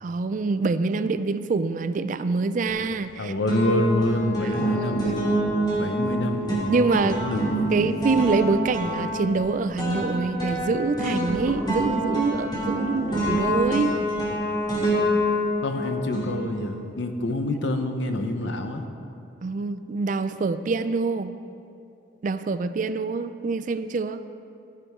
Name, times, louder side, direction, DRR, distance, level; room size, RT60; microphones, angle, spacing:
voice 1, 0.0-3.3 5.0-5.2 6.7-7.2 7.7-13.9 19.4-21.4 22.2-24.2, right 3 dB, 45° right, 12 dB, 0.4 m, -25 dB
sound 1, 2.7-3.1 3.5-16.9, right 1 dB, 25° left, 2.5 m, -27 dB
voice 2, 3.2-5.1 5.7-7.5 7.8-7.9 15.6-18.8, left 1 dB, 80° left, 6 dB, 0.9 m, -27 dB
14.0 x 10.0 x 3.6 m, 2.6 s
head